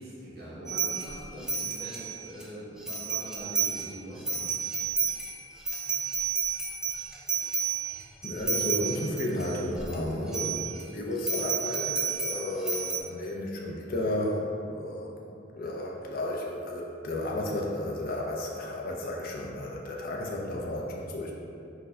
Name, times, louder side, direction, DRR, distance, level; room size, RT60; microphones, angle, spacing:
voice 1, 0.0-4.5, equal, 55° right, -8 dB, 0.9 m, -43 dB
sound 1, 0.7-2.4 2.8-3.9 4.2-10.0 10.3-10.8 11.3-13.0, right 5 dB, 5° right, 0.3 m, -31 dB
voice 2, 8.2-15.1 15.5-21.3, left 1 dB, 50° left, -2 dB, 0.5 m, -33 dB
4.5 x 2.2 x 4.8 m, 2.7 s
head